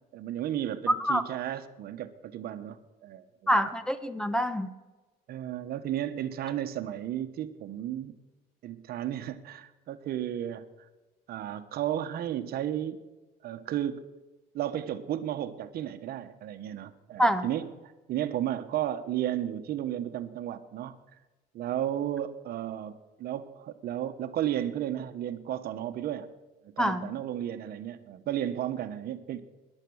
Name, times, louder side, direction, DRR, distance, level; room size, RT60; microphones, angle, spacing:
voice 1, 0.1-3.7 5.3-8.1 8.6-10.9 11.3-13.0 13.4-14.1 14.5-21.0 21.5-26.3 26.6-29.4, right 11 dB, 65° right, 10 dB, 1.1 m, -33 dB
voice 2, 0.9-1.2 3.5-4.7 17.2-17.5 26.8-27.1, equal, 5° left, 12 dB, 0.9 m, -26 dB
14.5 x 11.0 x 6.3 m, 1.2 s
cardioid pair, 110°, 17 cm